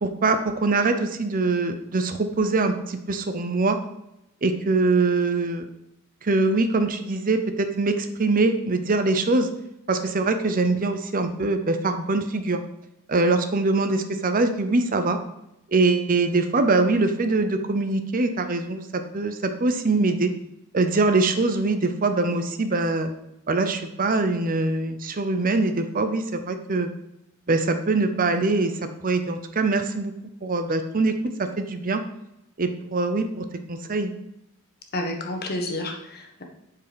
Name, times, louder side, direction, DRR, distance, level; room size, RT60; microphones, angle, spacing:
voice 1, 0.0-3.8 4.4-5.7 6.2-9.5 9.9-12.6 13.1-15.2 15.7-20.3 20.7-23.1 23.5-26.9 27.5-30.1 30.4-32.0 32.6-34.1, right 3 dB, 40° right, 8 dB, 0.6 m, -23 dB
voice 2, 34.9-36.4, left 1 dB, 45° left, 2 dB, 1.3 m, -30 dB
8.1 x 4.7 x 5.1 m, 0.84 s
head